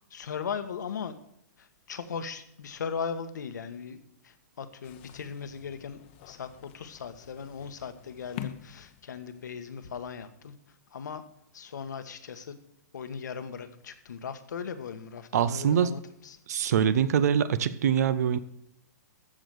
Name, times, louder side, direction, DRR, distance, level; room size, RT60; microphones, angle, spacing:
voice 1, 0.1-1.1 1.6-4.0 4.2-6.0 6.2-11.2 11.5-12.6 12.9-16.4, left 6 dB, 85° left, 9 dB, 1.5 m, -38 dB
sound 1, 4.8-9.6, left 11 dB, 40° left, 0.9 m, -46 dB
voice 2, 15.3-15.9 16.5-18.4, right 8 dB, 65° right, 15 dB, 0.7 m, -24 dB
14.5 x 5.1 x 7.8 m, 0.78 s
hypercardioid pair, 155°, 9 cm